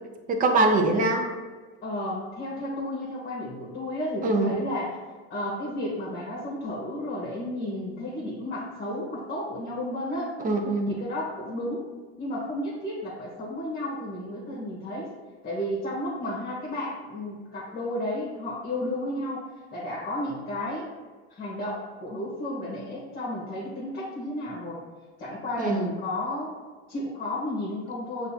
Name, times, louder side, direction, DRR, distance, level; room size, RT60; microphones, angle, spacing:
voice 1, 0.3-1.3 4.2-4.6 10.4-10.9 25.6-25.9, right 2 dB, 25° right, 4 dB, 0.6 m, -23 dB
voice 2, 1.8-5.0 5.3-10.3 10.9-11.9 12.2-15.1 15.4-20.9 21.3-24.8 25.2-26.5 26.9-28.3, left 1 dB, 30° left, -5 dB, 1.3 m, -32 dB
6.4 x 2.6 x 2.8 m, 1.4 s
supercardioid pair, 120°, 32 cm